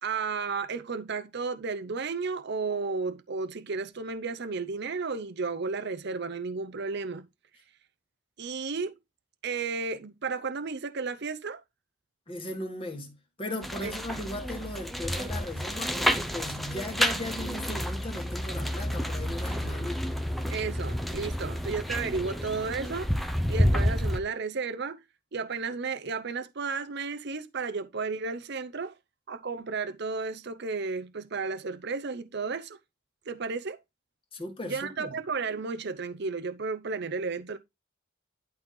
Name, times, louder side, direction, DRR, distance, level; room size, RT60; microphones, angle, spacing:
voice 1, 0.0-7.3 8.4-8.9 9.4-11.6 13.8-13.9 20.5-25.0 25.3-28.9 29.3-32.8 33.3-33.8 34.6-37.6, right 4 dB, 55° right, 0.7 m, -33 dB
voice 2, 12.3-20.0 34.3-35.2, left 1 dB, 25° left, 2.0 m, -37 dB
sound 1, 13.6-24.2, equal, ahead, 0.8 m, -30 dB
11.5 x 4.1 x 3.9 m
head